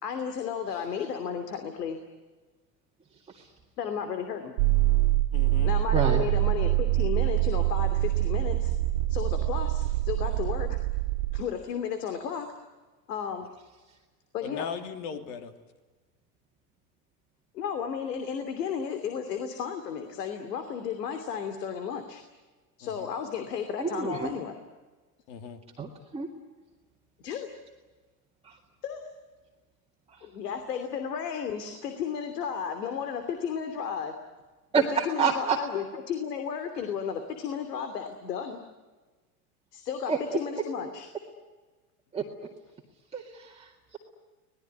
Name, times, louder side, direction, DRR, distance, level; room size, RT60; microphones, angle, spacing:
voice 1, 0.0-2.0 3.8-4.5 5.6-8.7 9.1-10.7 11.3-12.5 13.1-13.5 14.3-14.7 17.5-22.2 22.8-24.5 27.2-27.5 28.8-29.0 30.2-34.1 34.7-38.6 39.7-41.1, left 7 dB, 85° left, 7 dB, 3.0 m, -33 dB
sound 1, 4.6-11.4, right 16 dB, 60° right, 2.1 m, -25 dB
voice 2, 5.3-5.7 14.4-15.5 22.8-23.1 25.3-25.6, left 6 dB, 55° left, 8 dB, 3.2 m, -38 dB
voice 3, 5.9-6.3 23.8-24.3 25.8-26.3 28.4-28.6 30.1-30.2 34.7-35.6 40.1-40.2 42.1-42.2 43.1-44.0, right 6 dB, 10° right, -1 dB, 2.1 m, -28 dB
25.5 x 19.5 x 9.7 m, 1.3 s
supercardioid pair, 130°, 47 cm